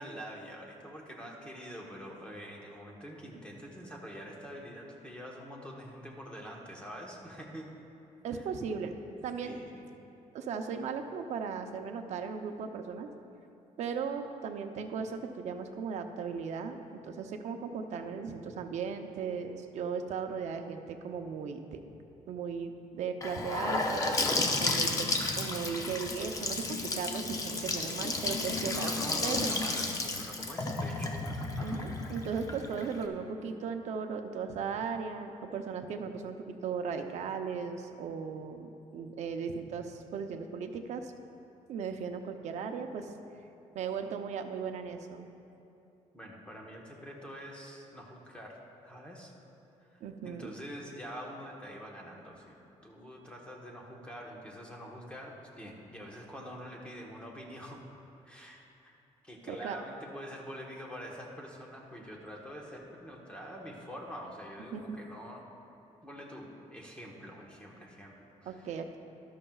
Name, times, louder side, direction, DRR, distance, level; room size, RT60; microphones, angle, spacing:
voice 1, 0.0-7.7 8.3-8.5 9.4-9.9 24.5-25.0 28.5-31.1 31.6-31.8 46.1-48.6 48.8-49.3 49.8-57.8 58.2-58.9 59.2-65.4 66.0-68.7, equal, 10° left, -1 dB, 1.1 m, -45 dB
voice 2, 8.2-8.9 9.2-9.6 10.3-13.1 13.8-21.8 22.3-24.2 24.6-24.9 25.4-28.9 29.2-29.6 31.6-41.1 41.7-43.1 43.7-45.3 50.0-50.5 59.5-59.8 64.7-65.0 68.5-69.0, right 6 dB, 65° right, 6 dB, 0.7 m, -37 dB
Gurgling / Sink (filling or washing) / Bathtub (filling or washing), 23.2-33.0, left 2 dB, 25° left, 0.7 m, -32 dB
13.0 x 12.0 x 2.4 m, 2.8 s
cardioid pair, 170°, 13 cm